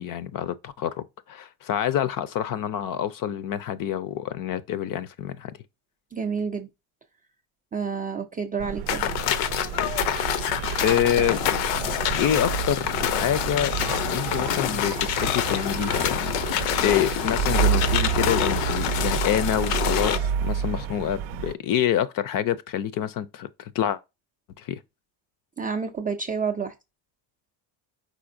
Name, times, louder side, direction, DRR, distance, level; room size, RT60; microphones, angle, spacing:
voice 1, 0.0-5.5 10.8-11.4 12.1-13.8 14.1-24.0 24.6-24.8, left 10 dB, 45° left, 0.5 m, -27 dB
voice 2, 6.1-6.7 7.7-9.1 25.6-26.7, right 5 dB, 20° right, 0.3 m, -29 dB
sound 1, 8.6-21.5, right 9 dB, 70° right, 0.6 m, -29 dB
sound 2, 8.9-20.2, left 11 dB, 80° left, 0.8 m, -26 dB
5.0 x 4.1 x 2.6 m
cardioid pair, 120°, 49 cm